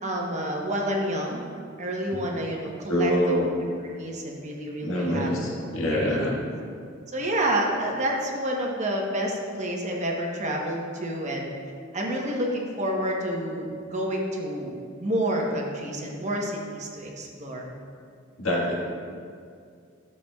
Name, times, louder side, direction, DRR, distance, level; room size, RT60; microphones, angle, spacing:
voice 1, 0.0-1.5 1.8-3.4 4.0-5.3 5.9-6.2 7.1-11.5 11.9-17.7, right 1 dB, 35° right, 0 dB, 1.0 m, -29 dB
voice 2, 2.9-3.5 4.8-6.4 18.4-18.8, equal, 90° left, -3 dB, 1.6 m, -25 dB
11.5 x 6.9 x 2.3 m, 2.2 s
head